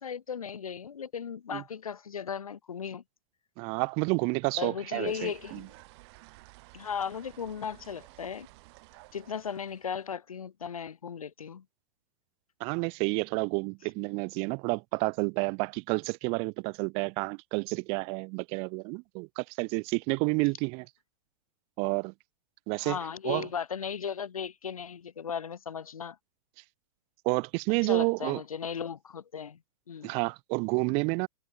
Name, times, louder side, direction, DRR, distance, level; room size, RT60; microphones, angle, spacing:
voice 1, 0.0-3.0 4.6-5.7 6.7-8.5 9.1-11.6 22.8-26.2 27.8-29.6 29.9-30.2, left 7 dB, 80° left, 0.9 m, -36 dB
voice 2, 3.6-5.6 12.6-20.9 21.8-22.1 22.7-23.0 23.2-23.5 27.2-28.4 30.0-31.3, right 33 dB, 35° right, 0.4 m, -30 dB
sound 1, 5.1-10.1, right 25 dB, 50° right, 4.9 m, -54 dB
figure-of-eight pair, 105°, 18 cm